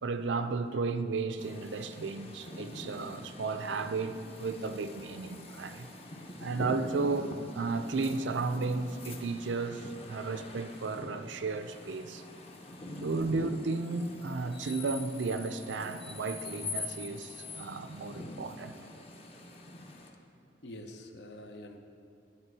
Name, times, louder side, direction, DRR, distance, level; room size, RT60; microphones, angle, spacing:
voice 1, 0.0-5.9 6.4-12.2 13.0-18.8, right 3 dB, 80° right, 10 dB, 0.5 m, -34 dB
sound 1, 1.4-20.1, left 2 dB, 35° left, 0.8 m, -44 dB
voice 2, 20.6-21.8, left 1 dB, 65° left, 5 dB, 0.8 m, -46 dB
10.5 x 8.6 x 4.7 m, 2.5 s
head